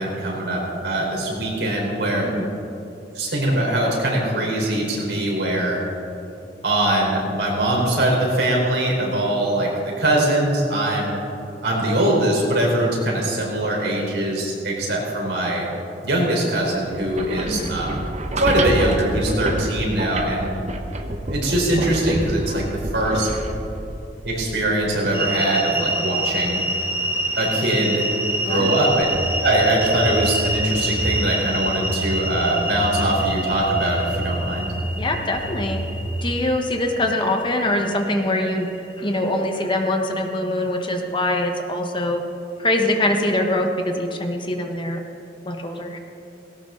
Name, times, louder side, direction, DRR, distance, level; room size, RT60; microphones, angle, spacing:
voice 1, 0.0-2.3 3.1-5.8 6.6-11.2 11.6-15.7 16.0-17.9 18.4-20.5 21.3-23.3 24.2-26.6 27.4-28.1 28.5-29.1 29.4-34.7, right 1 dB, 75° right, -2 dB, 4.3 m, -22 dB
sound 1, 16.9-25.0, right 1 dB, 40° right, 1.1 m, -28 dB
sound 2, 25.1-39.2, right 1 dB, 15° right, 1.6 m, -27 dB
voice 2, 28.5-28.8 35.0-35.8 36.2-42.2 42.6-45.0 45.4-46.0, left 1 dB, 30° left, 4 dB, 1.3 m, -23 dB
sound 3, 28.9-36.3, right 1 dB, 60° right, 1.3 m, -30 dB
18.0 x 17.5 x 4.0 m, 2.7 s
head